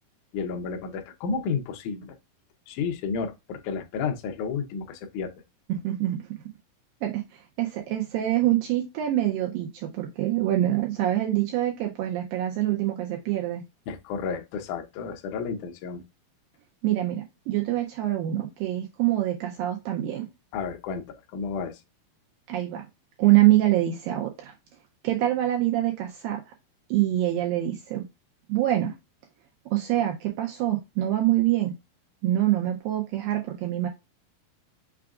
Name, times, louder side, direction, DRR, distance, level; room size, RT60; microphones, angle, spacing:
voice 1, 0.3-2.2 2.7-5.3 13.9-16.0 20.5-21.0 21.3-21.8, left 5 dB, 90° left, 1.7 m, -31 dB
voice 2, 5.7-6.2 7.0-13.6 16.8-20.3 22.5-22.9 23.2-24.5 25.0-26.4 26.9-28.0 28.5-28.9 29.7-31.7 32.2-33.9, right 14 dB, 80° right, 2.2 m, -25 dB
5.8 x 2.5 x 3.5 m
omnidirectional pair, 4.4 m